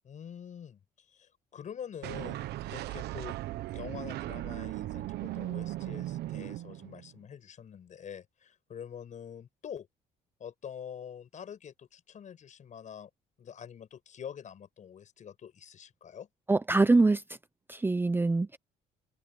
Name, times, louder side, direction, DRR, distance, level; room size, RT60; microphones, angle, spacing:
voice 1, 0.0-0.8 1.1-3.4 3.7-9.9 10.4-13.1 13.4-16.3, left 8 dB, 45° left, 5.6 m, -45 dB
sound 1, 2.0-7.2, right 15 dB, 75° right, 1.1 m, -37 dB
voice 2, 16.5-17.2 17.7-18.6, right 3 dB, 10° right, 0.7 m, -24 dB
cardioid pair, 110°, 17 cm